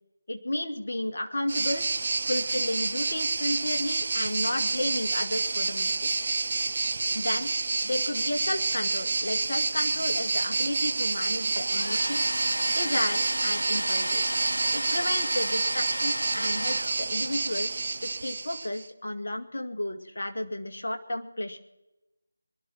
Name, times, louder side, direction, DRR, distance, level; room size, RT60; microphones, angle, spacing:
voice 1, 0.3-1.8 2.3-6.3 7.1-7.5 7.8-14.3 14.7-17.7 18.0-21.6, left 1 dB, 55° left, 4 dB, 2.3 m, -32 dB
sound 1, 1.5-18.9, right 3 dB, 45° right, 1.0 m, -28 dB
Domestic sounds home sounds, 11.6-17.5, right 1 dB, 85° right, 0.6 m, -33 dB
24.5 x 11.5 x 4.5 m, 0.96 s
figure-of-eight pair, 160°, 0 cm